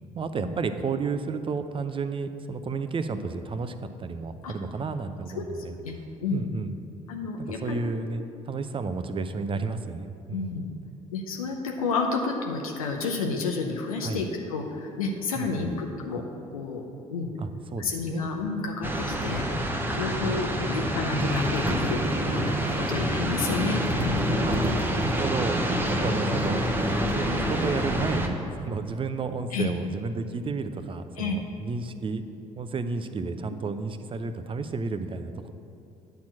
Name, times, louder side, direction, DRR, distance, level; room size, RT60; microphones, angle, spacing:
voice 1, 0.1-5.7 6.3-6.8 7.4-10.5 14.0-14.2 15.3-15.7 17.4-18.2 20.1-20.5 24.5-24.6 24.9-25.6 25.9-26.7 27.1-32.3 32.6-35.5, right 4 dB, 30° right, 9 dB, 0.6 m, -32 dB
voice 2, 7.1-7.8 10.3-10.6 11.1-16.2 16.5-16.8 17.1-17.3 17.8-19.4 19.9-22.6 22.9-24.4 29.5-29.7 31.2-31.4, left 4 dB, 85° left, 1 dB, 0.7 m, -30 dB
sound 1, 18.8-28.3, equal, 10° right, 1.0 m, -27 dB
sound 2, 21.2-28.1, right 3 dB, 65° right, 0.8 m, -42 dB
9.3 x 4.4 x 7.4 m, 2.7 s
hypercardioid pair, 55°, 18 cm